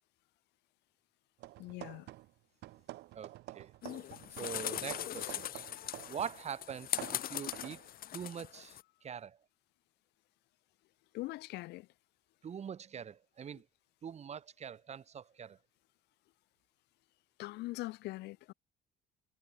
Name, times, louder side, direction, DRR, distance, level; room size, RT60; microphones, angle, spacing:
sound 1, 1.4-2.4 2.6-6.4 6.7-7.9, right 17 dB, 80° right, 1.9 m, -49 dB
voice 1, 1.6-2.1 11.1-11.9 17.4-18.5, left 19 dB, 85° left, 2.1 m, -42 dB
voice 2, 3.2-3.7 4.4-5.5 6.1-7.0 7.3-7.8 8.1-9.4 12.4-13.6 14.0-15.6, right 8 dB, 40° right, 1.7 m, -43 dB
sound 2, 3.8-8.8, left 12 dB, 60° left, 2.0 m, -40 dB
cardioid pair, 110°, 17 cm